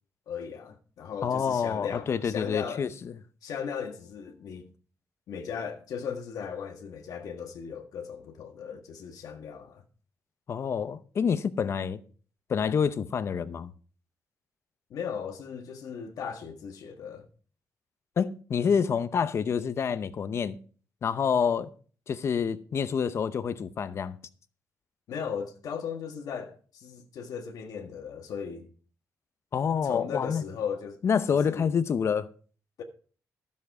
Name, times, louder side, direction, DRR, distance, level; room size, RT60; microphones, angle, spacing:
voice 1, 0.3-2.9 3.4-4.7 5.3-9.8 14.9-17.3 25.1-28.7 29.8-31.0 31.3-31.8 32.8-32.9, left 7 dB, 80° left, 1.6 m, -37 dB
voice 2, 1.2-2.9 10.5-12.0 12.5-13.7 18.2-20.6 21.0-21.7 22.1-24.2 29.5-30.4 31.0-32.3, left 6 dB, 45° left, 0.7 m, -27 dB
13.0 x 7.3 x 4.8 m
wide cardioid pair, 150°, 6 cm